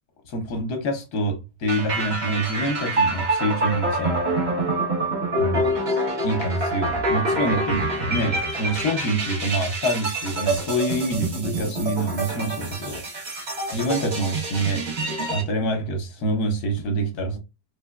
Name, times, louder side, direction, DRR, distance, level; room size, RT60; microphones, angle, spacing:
voice 1, 0.3-4.2 5.4-5.7 6.2-13.0 13.7-14.9 15.3-17.4, right 1 dB, 70° left, 1.3 m, -26 dB
sound 1, 1.7-15.4, right 2 dB, 45° right, 1.2 m, -26 dB
3.4 x 3.2 x 2.2 m
omnidirectional pair, 1.8 m